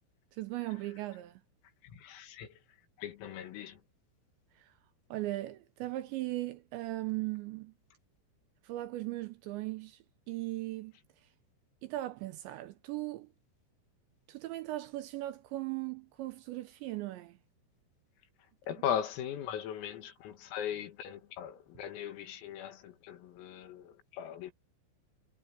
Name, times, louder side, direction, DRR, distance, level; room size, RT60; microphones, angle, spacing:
voice 1, 0.4-1.4 5.1-7.7 8.6-10.0 10.3-10.9 11.8-13.3 14.3-17.4, right 17 dB, 80° right, 2.7 m, -38 dB
voice 2, 1.8-3.8 18.7-24.5, left 9 dB, 90° left, 5.0 m, -39 dB
omnidirectional pair, 5.8 m